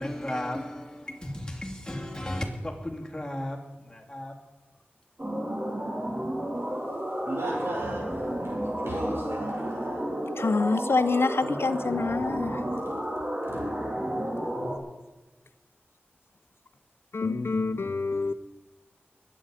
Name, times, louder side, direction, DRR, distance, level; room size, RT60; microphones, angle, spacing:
voice 1, 0.0-4.3, left 1 dB, 20° left, 2.7 m, -35 dB
sound 1, 5.2-14.8, equal, 35° right, 2.8 m, -32 dB
voice 2, 7.3-8.1 8.4-10.0 13.5-13.6, right 1 dB, 75° right, 4.9 m, -35 dB
voice 3, 10.4-12.6 17.1-18.3, left 3 dB, 75° left, 0.7 m, -26 dB
21.5 x 8.8 x 5.0 m
wide cardioid pair, 50°, 4 cm